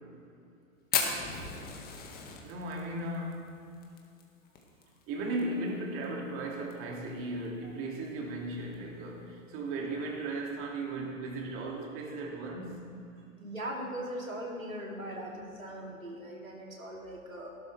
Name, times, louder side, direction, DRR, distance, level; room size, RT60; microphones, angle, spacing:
Fire, 0.9-5.4 5.7-5.8 6.0-6.1 6.5-6.9 7.4-7.5 8.6-8.7, left 6 dB, 25° left, 1.8 m, -35 dB
voice 1, 2.4-3.5 5.1-12.9, right 2 dB, 35° right, 0 dB, 2.6 m, -36 dB
voice 2, 13.4-17.5, right 1 dB, 90° right, -1 dB, 3.0 m, -40 dB
17.5 x 12.0 x 3.4 m, 2.5 s
figure-of-eight pair, 105°, 40 cm